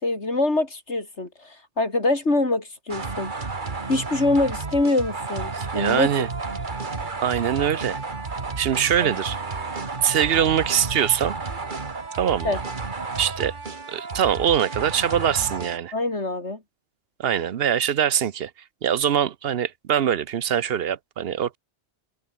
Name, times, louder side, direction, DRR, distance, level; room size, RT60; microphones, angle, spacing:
voice 1, 0.0-3.3 3.9-6.1 9.0-9.2 12.4-12.6 15.9-16.6, left 2 dB, 90° left, 4.7 m, -24 dB
sound 1, 2.9-15.8, right 4 dB, 45° right, 1.9 m, -32 dB
voice 2, 5.6-6.3 7.2-8.0 8.6-9.4 10.0-11.3 12.1-12.6 13.2-13.5 13.9-15.9 17.2-18.5 18.8-21.6, right 9 dB, 65° right, 0.9 m, -23 dB
omnidirectional pair, 1.1 m